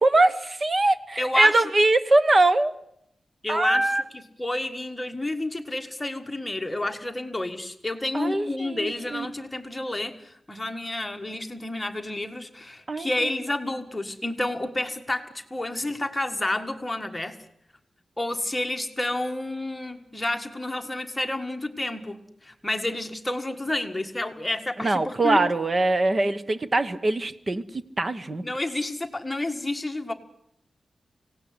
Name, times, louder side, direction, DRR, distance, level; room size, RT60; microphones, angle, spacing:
voice 1, 0.0-2.7 3.5-4.0 8.1-9.3 12.9-13.3 24.8-28.5, right 2 dB, 35° right, 1.2 m, -22 dB
voice 2, 1.2-1.7 3.4-17.4 18.2-25.4 28.4-30.1, left 1 dB, 15° left, 1.7 m, -30 dB
25.5 x 18.0 x 9.6 m
wide cardioid pair, 125°, 0 cm